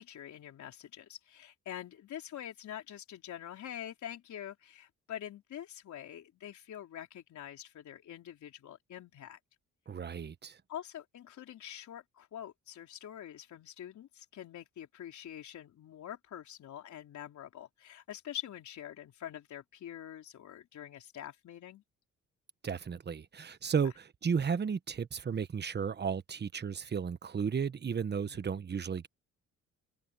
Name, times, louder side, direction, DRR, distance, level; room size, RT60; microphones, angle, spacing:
voice 1, 0.0-9.4 10.7-21.8 28.2-28.4, left 11 dB, 70° left, 4.2 m, -45 dB
voice 2, 9.9-10.6 22.6-29.1, right 6 dB, 35° right, 1.2 m, -34 dB
cardioid pair, 90°, 30 cm